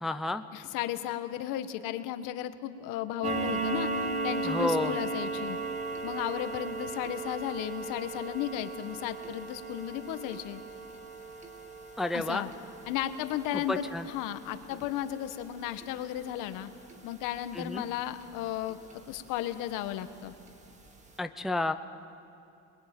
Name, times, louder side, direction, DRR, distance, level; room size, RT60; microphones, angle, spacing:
voice 1, 0.0-0.4 4.4-5.0 12.0-12.4 13.7-14.1 17.5-17.8 21.2-21.7, left 2 dB, ahead, 8 dB, 0.5 m, -30 dB
voice 2, 0.5-3.9 4.2-5.6 6.0-10.6 12.1-12.5 12.9-16.7 17.0-18.8 19.1-20.3, left 12 dB, 75° left, 10 dB, 1.5 m, -34 dB
sound 1, 3.2-18.3 18.7-18.9 19.4-19.5 19.9-20.0 20.5-20.6 20.9-21.0, right 3 dB, 20° right, 2.0 m, -37 dB
27.0 x 21.5 x 9.2 m, 2.7 s
cardioid pair, 165°, 32 cm